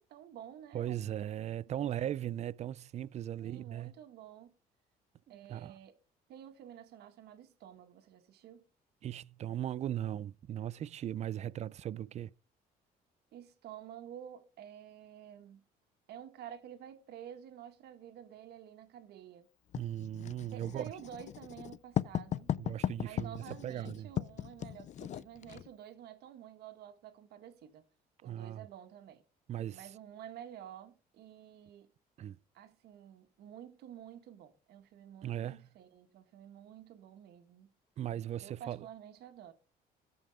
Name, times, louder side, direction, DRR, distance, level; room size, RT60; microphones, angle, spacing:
voice 1, 0.0-1.0 1.7-1.9 3.3-4.5 5.3-6.0 6.3-8.7 13.3-15.6 16.1-19.5 20.5-22.5 23.0-27.8 28.2-29.2 29.7-31.9 32.5-37.7 38.4-39.5, right 10 dB, 75° right, 1.6 m, -50 dB
voice 2, 0.7-3.9 5.3-5.8 9.0-12.3 19.8-20.8 22.6-24.1 28.3-28.6 29.5-29.9 32.2-32.4 35.2-35.7 38.0-38.9, right 11 dB, 40° right, 0.4 m, -38 dB
Writing, 19.7-25.7, left 10 dB, 45° left, 0.4 m, -37 dB
13.5 x 5.5 x 4.9 m
cardioid pair, 110°, 17 cm